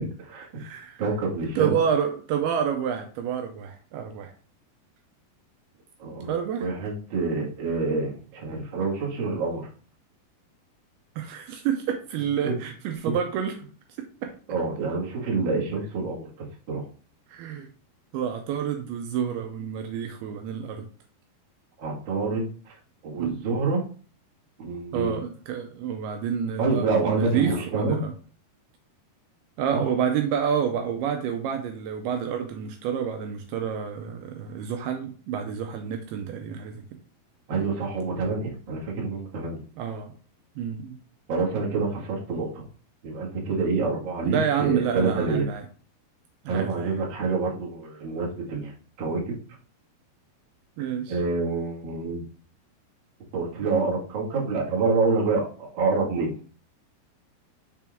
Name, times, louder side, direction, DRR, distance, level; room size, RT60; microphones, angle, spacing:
voice 1, 0.0-0.6 1.0-1.7 6.0-9.6 12.4-12.5 14.5-16.3 16.7-16.8 21.8-22.7 23.0-23.8 24.6-25.2 26.6-28.0 29.7-29.9 37.5-39.6 41.3-42.6 43.0-45.4 46.5-48.7 49.0-49.4 51.1-52.2 53.3-56.3, right 4 dB, 50° right, -4 dB, 1.5 m, -27 dB
voice 2, 0.6-1.0 1.6-4.3 6.3-6.7 11.2-13.6 14.2-14.3 17.3-17.7 18.1-20.9 23.2-23.4 24.9-28.1 29.6-36.8 39.8-40.1 40.6-41.0 44.2-45.7 46.5-46.9 50.8-51.2, right 8 dB, 80° right, 4 dB, 2.4 m, -28 dB
6.0 x 4.4 x 3.5 m, 0.41 s
omnidirectional pair, 4.8 m